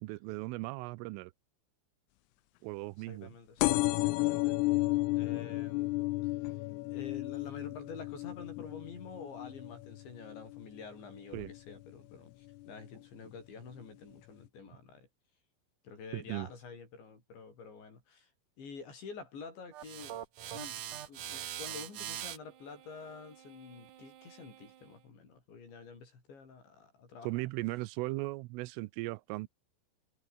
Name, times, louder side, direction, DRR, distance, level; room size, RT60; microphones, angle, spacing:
voice 1, 0.0-1.3 2.6-3.3 11.3-11.5 16.1-16.5 27.2-29.5, right 21 dB, 90° right, 3.3 m, -37 dB
voice 2, 3.1-3.6 3.9-4.6 5.1-6.3 6.9-15.1 15.8-18.3 18.6-20.2 20.5-27.3, left 5 dB, 65° left, 9.1 m, -49 dB
sound 1, 3.6-10.8 11.3-11.8 12.7-12.8 13.0-13.1 13.3-13.4, left 20 dB, 90° left, 3.5 m, -33 dB
sound 2, 19.7-24.9, right 11 dB, 65° right, 2.1 m, -44 dB
omnidirectional pair, 5.7 m